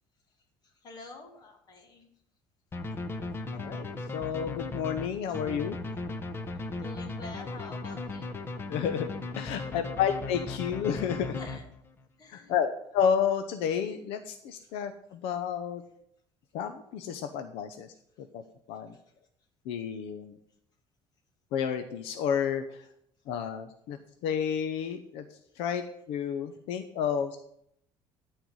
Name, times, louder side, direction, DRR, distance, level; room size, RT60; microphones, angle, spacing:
voice 1, 0.6-2.1 6.8-8.3 9.5-9.9 11.4-11.7 12.2-12.6, left 3 dB, 45° left, 4 dB, 2.3 m, -48 dB
sound 1, 2.7-12.0, left 3 dB, 25° left, 1.0 m, -37 dB
voice 2, 3.5-3.9 4.1-5.8 8.7-9.1 9.3-11.4 12.3-15.8 16.5-17.9 18.2-18.4 18.7-18.9 19.6-20.4 21.5-22.8 23.3-25.2 25.6-27.4, left 8 dB, 85° left, 8 dB, 0.9 m, -31 dB
13.0 x 4.6 x 8.0 m, 0.72 s
cardioid pair, 140°, 10 cm